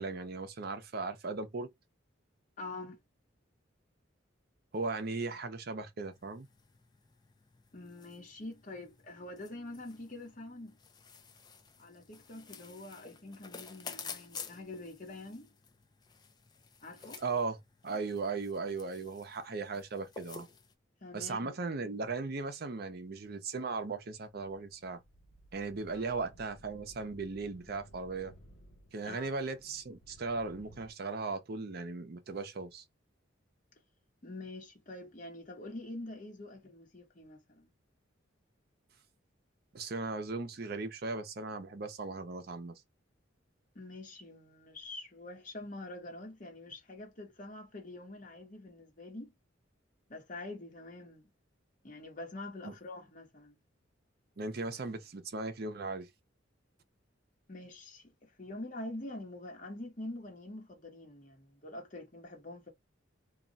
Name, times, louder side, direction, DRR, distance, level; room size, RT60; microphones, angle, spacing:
voice 1, 0.0-1.7 4.7-6.5 17.2-20.5 21.1-25.0 25.5-28.3 28.9-32.8 39.7-42.8 52.6-52.7 54.4-56.1, right 3 dB, 50° right, 0.6 m, -37 dB
voice 2, 2.6-3.0 7.7-10.8 11.8-15.5 16.8-17.2 21.0-21.5 25.9-26.0 29.0-29.3 34.2-37.7 43.7-49.3 50.1-51.3 51.8-53.5 57.5-62.7, left 2 dB, 40° left, 1.1 m, -45 dB
sound 1, 6.1-20.7, left 6 dB, 20° left, 0.4 m, -51 dB
sound 2, 24.3-30.9, equal, 85° left, 0.9 m, -58 dB
2.4 x 2.2 x 3.8 m
head